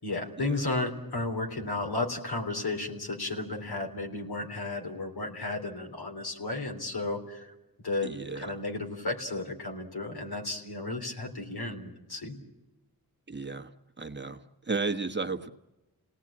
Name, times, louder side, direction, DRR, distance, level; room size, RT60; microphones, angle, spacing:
voice 1, 0.0-7.5 7.8-12.4, left 2 dB, 80° left, 2 dB, 3.8 m, -33 dB
voice 2, 8.0-8.6 13.3-13.7 14.0-15.5, right 4 dB, 30° right, 6 dB, 1.2 m, -34 dB
29.5 x 18.5 x 8.8 m, 1.1 s
wide cardioid pair, 80°, 37 cm